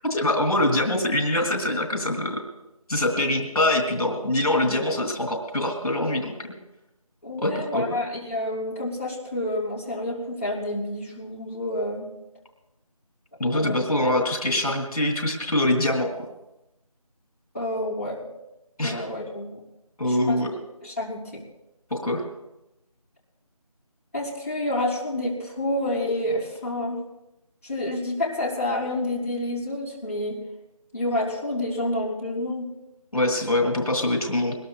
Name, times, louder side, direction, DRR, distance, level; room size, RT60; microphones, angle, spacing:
voice 1, 0.0-2.4 2.9-6.5 7.4-7.8 13.4-16.3 18.8-19.0 20.0-20.5 21.9-22.2 33.1-34.6, left 1 dB, 70° left, 2 dB, 2.7 m, -24 dB
voice 2, 7.2-12.1 13.5-13.8 17.5-18.2 18.8-19.6 20.0-20.4 20.8-21.4 24.1-27.0 27.6-30.4 30.9-32.7, left 1 dB, 25° left, -9 dB, 3.5 m, -29 dB
22.0 x 20.5 x 2.4 m, 0.91 s
figure-of-eight pair, 180°, 20 cm